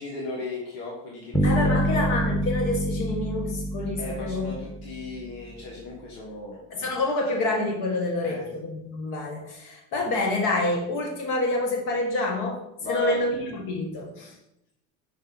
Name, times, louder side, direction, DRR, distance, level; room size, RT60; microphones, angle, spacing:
voice 1, 0.0-1.9 4.0-6.6 8.2-8.5 12.8-13.2, left 3 dB, 85° left, -3 dB, 1.7 m, -35 dB
sound 1, 1.3-5.3, equal, ahead, 1.0 m, -26 dB
voice 2, 1.4-4.5 6.7-12.6 12.9-14.3, left 2 dB, 65° left, 2 dB, 1.5 m, -27 dB
5.7 x 5.2 x 4.1 m, 0.81 s
cardioid pair, 130°, 33 cm